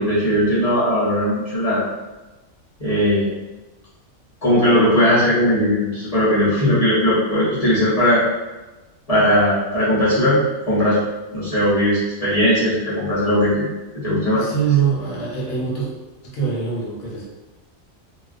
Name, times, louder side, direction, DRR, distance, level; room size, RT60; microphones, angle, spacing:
voice 1, 0.0-1.9 2.8-3.3 4.4-8.2 9.1-10.4 10.7-11.0 11.3-13.7 14.0-14.4, equal, 40° left, -11 dB, 0.5 m, -18 dB
voice 2, 14.3-15.9 16.2-17.2, right 7 dB, 65° left, -4 dB, 0.9 m, -23 dB
2.3 x 2.2 x 2.4 m, 1.1 s
omnidirectional pair, 1.4 m